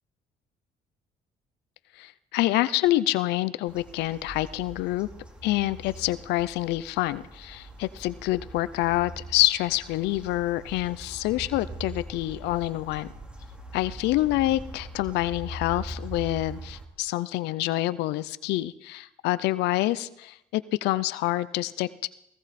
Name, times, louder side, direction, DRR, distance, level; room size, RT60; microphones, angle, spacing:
voice 1, 2.0-5.1 5.4-13.1 13.7-22.1, left 16 dB, 85° left, 17 dB, 0.5 m, -27 dB
sound 1, 3.7-16.9, right 1 dB, 5° right, 2.4 m, -42 dB
18.0 x 16.5 x 4.2 m, 0.80 s
cardioid pair, 110°, 17 cm